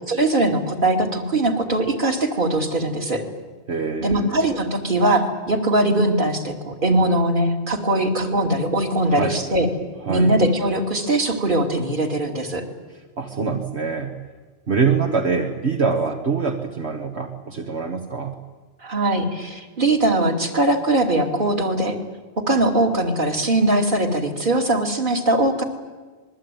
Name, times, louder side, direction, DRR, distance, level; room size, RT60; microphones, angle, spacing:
voice 1, 0.1-3.2 4.0-9.7 10.1-12.6 18.8-22.0 22.5-25.6, right 1 dB, 45° right, 4 dB, 3.0 m, -21 dB
voice 2, 3.7-4.4 9.1-9.4 10.0-10.4 12.9-14.2 14.7-18.4 24.6-24.7, right 5 dB, 70° right, 3 dB, 1.9 m, -24 dB
25.5 x 21.5 x 9.2 m, 1.4 s
omnidirectional pair, 1.2 m